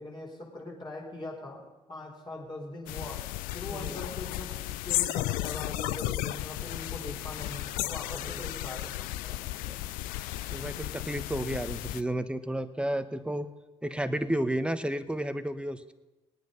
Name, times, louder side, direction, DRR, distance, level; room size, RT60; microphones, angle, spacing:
voice 1, 0.0-3.3 3.5-9.4, left 2 dB, 35° left, -2 dB, 4.9 m, -41 dB
sound 1, 2.9-12.0, left 16 dB, 75° left, 0.4 m, -34 dB
voice 2, 3.7-4.0 8.1-8.4 9.6-9.8 10.5-13.5 13.8-15.9, right 1 dB, 5° right, 11 dB, 1.1 m, -32 dB
19.0 x 9.1 x 5.5 m, 1.1 s
hypercardioid pair, 50°, 14 cm